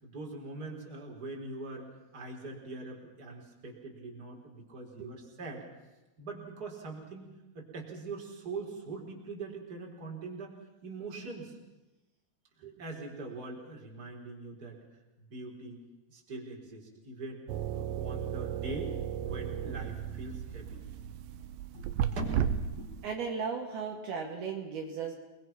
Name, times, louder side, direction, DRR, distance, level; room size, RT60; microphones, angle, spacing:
voice 1, 0.0-5.6 6.2-7.3 7.5-10.5 10.8-11.6 12.8-14.8 15.2-15.8 16.1-17.4 17.7-18.9 19.2-20.8 21.7-23.0, right 3 dB, 20° right, 0 dB, 4.3 m, -42 dB
sound 1, 17.5-23.1, right 9 dB, 80° right, 3.2 m, -34 dB
voice 2, 23.0-25.1, right 5 dB, 65° right, 1 dB, 3.9 m, -36 dB
30.0 x 21.5 x 5.9 m, 1.0 s
omnidirectional pair, 5.1 m